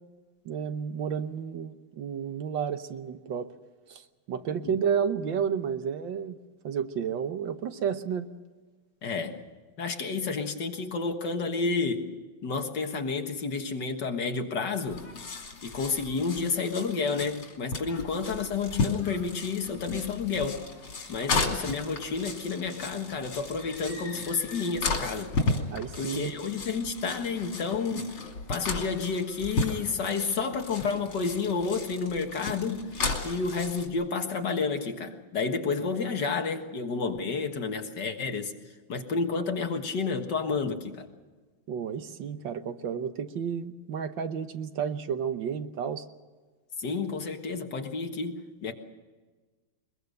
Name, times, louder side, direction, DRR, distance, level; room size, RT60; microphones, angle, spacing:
voice 1, 0.4-3.5 3.9-6.4 6.6-8.3 25.7-26.4 36.0-36.1 41.7-46.0, right 7 dB, 65° right, 9 dB, 1.6 m, -31 dB
voice 2, 9.0-9.4 9.8-12.1 12.4-15.0 15.6-20.6 21.1-25.4 26.0-28.1 28.5-32.8 33.2-38.5 38.9-41.1 46.8-48.7, left 4 dB, 55° left, 5 dB, 2.1 m, -30 dB
sound 1, 14.9-33.9, left 3 dB, 90° left, 3.8 m, -34 dB
23.0 x 22.0 x 6.6 m, 1.4 s
omnidirectional pair, 2.3 m